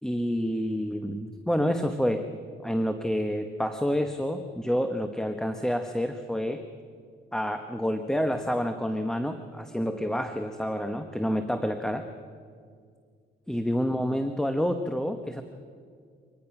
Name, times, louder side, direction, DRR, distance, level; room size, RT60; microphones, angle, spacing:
voice 1, 0.0-2.3 2.6-6.6 7.3-12.0 13.5-15.4, equal, 5° left, 7 dB, 1.1 m, -28 dB
25.0 x 19.0 x 6.0 m, 2.1 s
cardioid pair, 90°, 20 cm